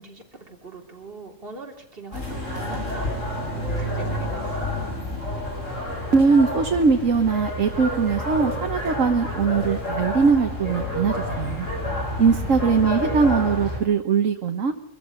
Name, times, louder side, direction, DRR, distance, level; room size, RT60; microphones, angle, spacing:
voice 1, 0.0-3.1 3.6-4.7 12.2-13.1, right 3 dB, 45° right, 1 dB, 3.6 m, -42 dB
sound 1, 2.1-13.8, left 1 dB, 80° left, 8.1 m, -29 dB
voice 2, 6.1-11.7 12.2-14.7, right 5 dB, 90° right, 5 dB, 1.7 m, -21 dB
23.5 x 14.5 x 9.6 m, 0.69 s
omnidirectional pair, 1.3 m